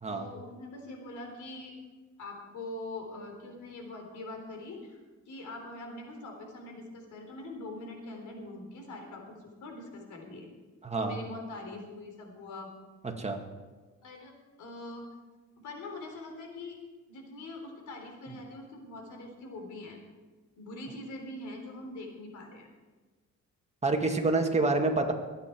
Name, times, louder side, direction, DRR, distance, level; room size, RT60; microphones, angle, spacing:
voice 1, 0.1-1.7 2.2-10.5 11.0-12.7 14.0-14.3 14.6-15.0 15.6-16.8 17.1-20.0 20.6-22.7, left 2 dB, 75° left, 2 dB, 3.8 m, -43 dB
voice 2, 10.8-11.2 13.2-13.4 23.8-25.1, right 3 dB, 20° right, 3 dB, 2.0 m, -27 dB
23.5 x 8.9 x 4.6 m, 1.3 s
cardioid pair, 90°, 30 cm